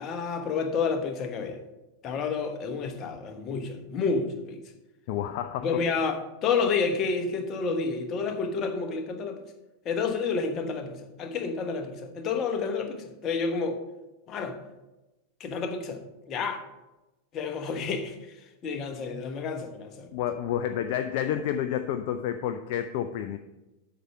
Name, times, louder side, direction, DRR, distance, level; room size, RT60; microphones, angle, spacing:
voice 1, 0.0-1.6 2.0-4.6 5.6-9.4 9.8-13.8 14.3-14.6 15.4-16.6 17.3-18.2 18.6-20.1, left 5 dB, 30° left, 1.1 m, -30 dB
voice 2, 5.1-5.8 20.1-23.4, left 10 dB, 50° left, 0.4 m, -30 dB
8.1 x 5.9 x 5.4 m
figure-of-eight pair, 90°, 0 cm